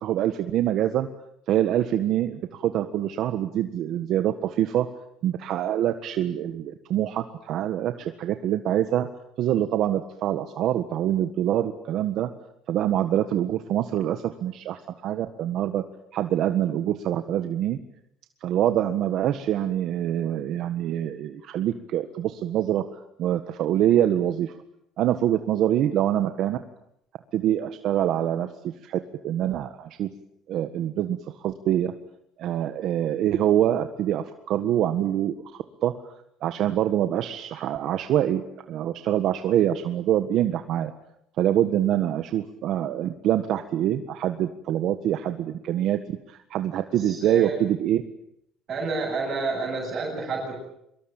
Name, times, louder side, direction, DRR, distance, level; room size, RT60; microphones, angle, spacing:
voice 1, 0.0-1.1 1.5-4.9 5.2-9.1 9.4-12.3 12.7-15.8 16.1-17.8 18.4-22.8 23.2-24.5 25.0-26.6 27.3-28.5 28.8-30.1 30.5-31.2 31.4-31.9 32.4-35.9 36.4-40.9 41.4-48.0, right 11 dB, 55° right, 8 dB, 1.6 m, -25 dB
voice 2, 46.9-47.6 48.7-50.6, right 3 dB, 35° right, -2 dB, 7.9 m, -29 dB
24.5 x 23.5 x 9.0 m, 0.77 s
cardioid pair, 145°, 0 cm